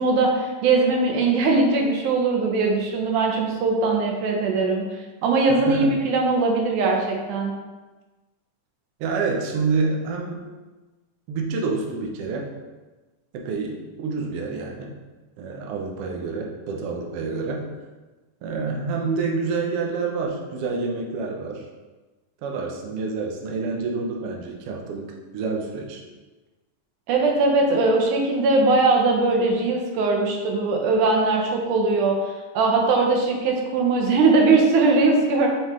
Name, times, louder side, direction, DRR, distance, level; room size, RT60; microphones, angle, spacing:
voice 1, 0.0-4.8 5.2-7.5 27.1-32.2 32.5-35.5, right 3 dB, 90° right, 1 dB, 2.5 m, -20 dB
voice 2, 5.5-5.9 9.0-10.4 11.3-12.5 13.3-14.9 15.4-17.7 18.4-21.6 22.4-26.0, right 4 dB, 70° right, 1 dB, 1.5 m, -28 dB
5.5 x 5.4 x 3.6 m, 1.2 s
omnidirectional pair, 3.4 m